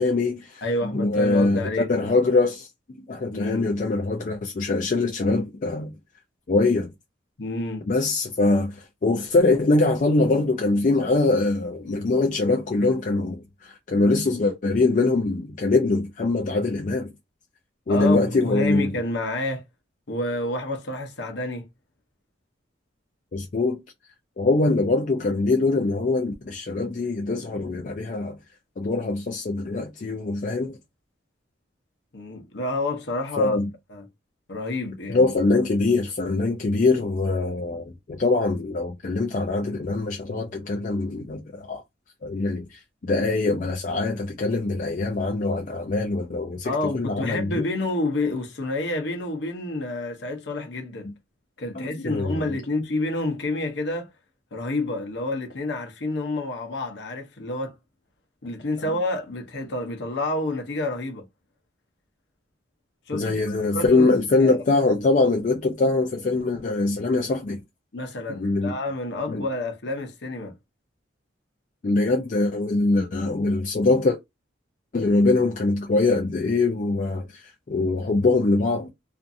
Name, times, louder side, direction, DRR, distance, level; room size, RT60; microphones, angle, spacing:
voice 1, 0.0-1.6 1.9-5.9 6.5-6.9 7.9-17.1 17.9-19.0 23.3-23.8 24.4-28.4 28.8-30.8 33.4-33.7 35.1-41.8 42.2-47.6 51.7-52.5 58.8-58.9 63.1-67.6 68.3-68.8 69.3-69.4 71.8-74.2 74.9-78.9, left 3 dB, 45° left, 0.4 m, -23 dB
voice 2, 0.6-1.9 3.3-3.7 7.4-7.8 17.9-19.6 20.1-21.7 32.1-33.6 33.9-34.1 34.5-35.3 46.6-51.1 51.6-54.1 54.5-57.8 58.4-61.2 63.1-63.4 63.7-64.1 64.4-64.6 67.9-70.5, left 2 dB, 65° left, 0.8 m, -29 dB
2.5 x 2.4 x 2.6 m
head